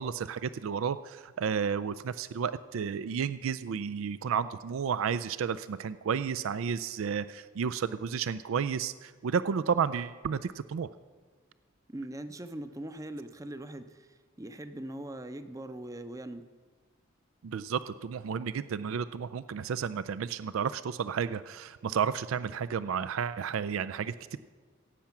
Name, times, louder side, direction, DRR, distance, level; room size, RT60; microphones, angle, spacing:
voice 1, 0.0-10.9 17.4-24.4, right 6 dB, 80° right, 14 dB, 0.4 m, -32 dB
voice 2, 11.9-16.4, right 1 dB, 15° right, 10 dB, 0.6 m, -41 dB
16.0 x 8.7 x 5.9 m, 1.5 s
head